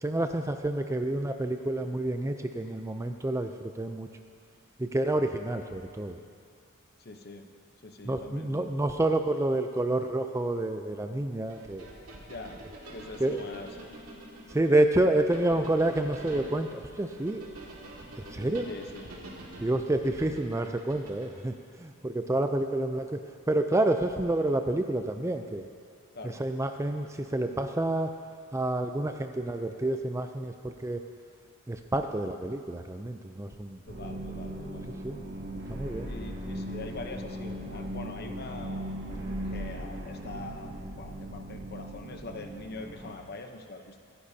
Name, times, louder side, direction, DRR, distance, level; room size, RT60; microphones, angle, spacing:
voice 1, 0.0-4.1 4.8-6.2 8.1-11.9 13.2-13.4 14.5-17.4 18.3-18.7 19.6-23.2 23.5-25.7 26.2-28.1 28.5-31.0 31.7-33.8 35.0-35.2 35.7-36.1, right 2 dB, 15° right, 6 dB, 0.4 m, -28 dB
voice 2, 7.0-7.5 7.8-8.7 12.3-12.6 12.9-13.9 18.6-19.4 26.1-26.4 33.9-35.0 36.0-38.9 39.5-44.0, left 2 dB, 45° left, 5 dB, 0.8 m, -43 dB
sound 1, 11.5-21.5, right 1 dB, 90° right, 2.1 m, -46 dB
sound 2, 33.9-43.1, right 1 dB, 60° right, 2.3 m, -38 dB
25.0 x 10.0 x 2.8 m, 2.2 s
head